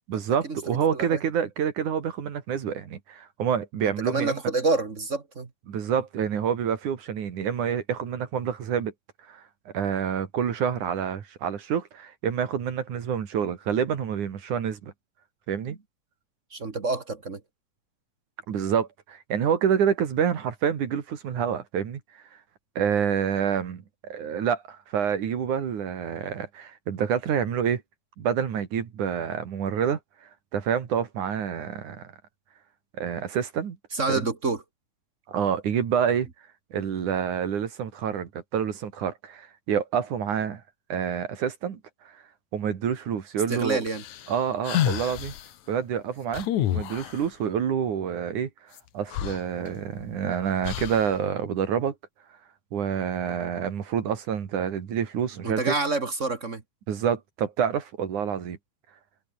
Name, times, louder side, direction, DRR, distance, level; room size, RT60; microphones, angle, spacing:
voice 1, 0.1-4.4 5.7-8.9 9.3-14.9 15.5-15.8 18.5-22.0 22.8-27.8 28.2-32.0 33.0-33.8 34.1-34.3 35.3-36.3 36.7-40.6 40.9-41.8 42.1-42.2 42.5-43.8 44.3-45.3 45.7-48.5 48.9-52.0 52.7-55.7 56.9-58.6, right 8 dB, 75° right, 3.8 m, -27 dB
voice 2, 3.8-5.5 15.7-15.8 16.5-17.4 33.9-34.6 43.5-44.0 55.4-56.6, right 3 dB, 30° right, 1.5 m, -28 dB
sound 1, 43.9-45.5 46.3-47.3 48.8-48.9 49.1-50.1 50.6-51.2, left 12 dB, 70° left, 2.6 m, -29 dB
omnidirectional pair, 3.6 m